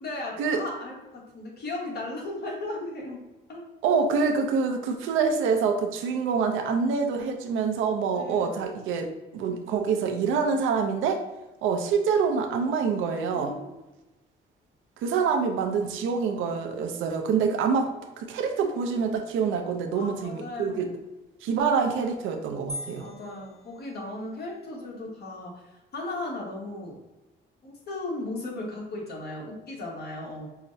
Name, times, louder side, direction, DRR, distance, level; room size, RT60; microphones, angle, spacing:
voice 1, 0.0-3.2 3.5-3.7 8.1-8.6 13.3-13.7 19.9-20.9 23.0-27.0 27.6-30.5, left 2 dB, 55° left, -2 dB, 1.2 m, -36 dB
voice 2, 3.8-11.2 11.6-13.5 15.0-17.9 18.2-20.9 21.4-23.1, right 5 dB, 85° right, 5 dB, 0.5 m, -26 dB
sound 1, 22.7-24.5, left 1 dB, 5° left, 0.9 m, -41 dB
5.7 x 2.1 x 2.6 m, 1.1 s
cardioid pair, 90°, 20 cm